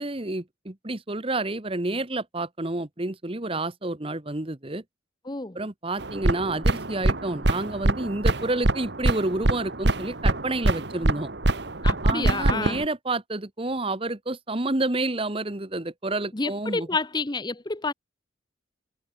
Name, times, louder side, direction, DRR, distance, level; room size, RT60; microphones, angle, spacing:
voice 1, 0.0-4.8 5.5-11.3 12.0-16.9, right 2 dB, 30° right, 1.3 m, -29 dB
voice 2, 5.3-5.6 11.8-12.9 16.3-17.9, left 3 dB, 20° left, 0.9 m, -29 dB
sound 1, 6.0-12.8, right 2 dB, 60° right, 1.6 m, -24 dB
head